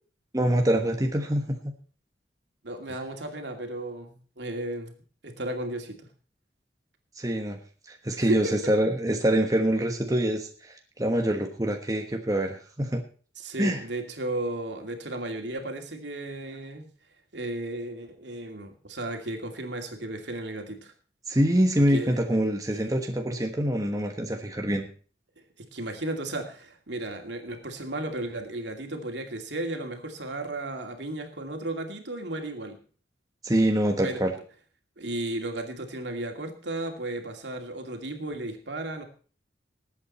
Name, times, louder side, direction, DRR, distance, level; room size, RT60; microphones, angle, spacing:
voice 1, 0.3-1.6 7.2-7.6 7.9-13.0 13.6-13.8 21.3-24.9 33.4-34.3, right 1 dB, 20° right, 3 dB, 1.3 m, -25 dB
voice 2, 2.6-4.9 5.2-6.0 8.2-8.5 13.4-16.9 17.3-20.9 21.9-22.2 25.6-32.8 34.0-34.2 35.0-39.0, right 1 dB, 85° right, 4 dB, 2.5 m, -34 dB
19.5 x 8.6 x 4.3 m, 0.41 s
head